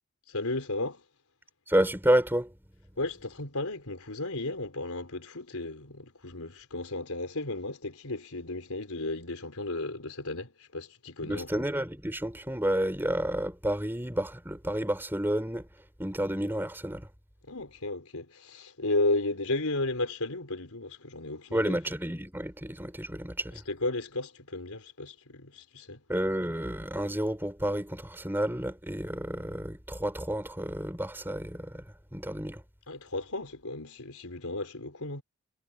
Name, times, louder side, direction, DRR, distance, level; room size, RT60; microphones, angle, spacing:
voice 1, 0.3-1.0 3.0-11.6 17.4-21.8 23.7-26.0 32.9-35.2, left 2 dB, 85° left, 4.1 m, -34 dB
voice 2, 1.7-2.5 11.2-15.7 16.0-17.1 21.5-23.6 26.1-32.6, right 1 dB, 10° right, 4.2 m, -30 dB
head